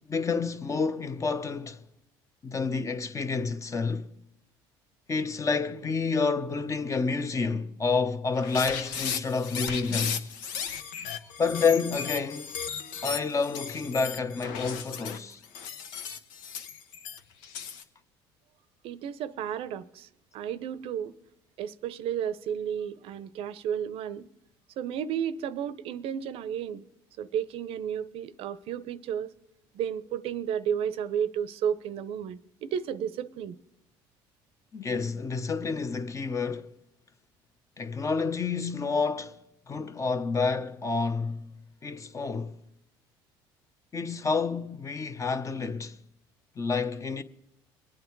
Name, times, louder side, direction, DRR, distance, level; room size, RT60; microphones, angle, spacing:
voice 1, 0.0-1.8 2.4-4.1 5.1-10.3 11.4-12.6 13.0-15.4 34.7-36.7 37.8-39.4 39.7-41.5 41.8-42.6 43.9-46.0 46.6-47.2, left 4 dB, 30° left, 0.9 m, -29 dB
sound 1, 8.3-17.8, left 7 dB, 90° left, 1.0 m, -36 dB
voice 2, 18.8-21.1 21.6-24.3 24.8-26.9 27.2-29.3 29.7-33.6, right 8 dB, 65° right, 0.6 m, -32 dB
22.0 x 9.1 x 4.6 m
supercardioid pair, 90°, 10 cm